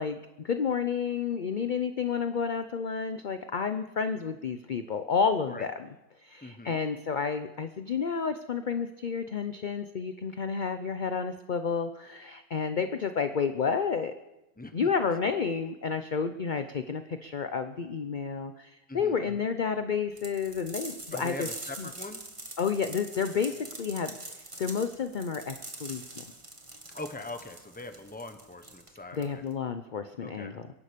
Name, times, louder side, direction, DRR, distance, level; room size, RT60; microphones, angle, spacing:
voice 1, 0.0-5.9 6.2-14.1 14.7-21.5 21.8-21.9 22.6-23.5 23.8-24.1 24.6-26.2 29.1-30.7, left 6 dB, 50° left, 9 dB, 0.6 m, -30 dB
voice 2, 6.4-6.8 14.6-14.9 18.9-19.4 21.1-22.2 26.9-29.4 30.2-30.5, left 2 dB, 5° left, 7 dB, 0.9 m, -42 dB
sound 1, 20.2-29.6, right 2 dB, 20° right, 1.6 m, -44 dB
23.5 x 11.0 x 5.2 m, 0.98 s
omnidirectional pair, 1.6 m